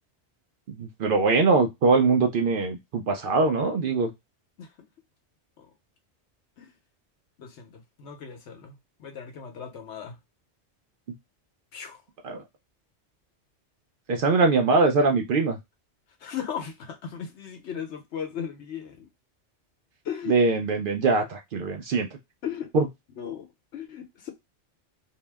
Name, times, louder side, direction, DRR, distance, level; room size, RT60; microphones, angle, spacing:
voice 1, 0.7-4.1 12.2-12.4 14.1-15.6 20.3-22.1 22.7-22.9, right 3 dB, 60° right, 0.6 m, -22 dB
voice 2, 7.4-10.2 11.7-12.0 16.2-19.1 20.0-20.4 22.4-22.7 23.2-24.3, left 8 dB, 75° left, 1.0 m, -37 dB
2.7 x 2.0 x 3.3 m
omnidirectional pair, 1.2 m